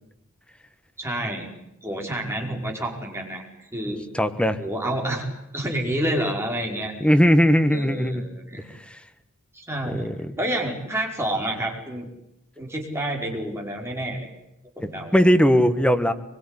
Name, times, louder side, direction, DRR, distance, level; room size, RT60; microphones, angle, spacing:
voice 1, 1.0-1.5 1.8-4.0 4.6-5.3 5.5-6.9 7.7-8.6 9.5-10.1 10.4-12.1 12.6-14.3 14.8-15.1, right 1 dB, 10° right, 0 dB, 5.2 m, -29 dB
voice 2, 4.1-4.6 7.0-8.2 8.9-9.0 9.9-10.3 15.1-16.1, equal, 5° left, 8 dB, 1.5 m, -19 dB
23.5 x 22.5 x 10.0 m, 0.84 s
head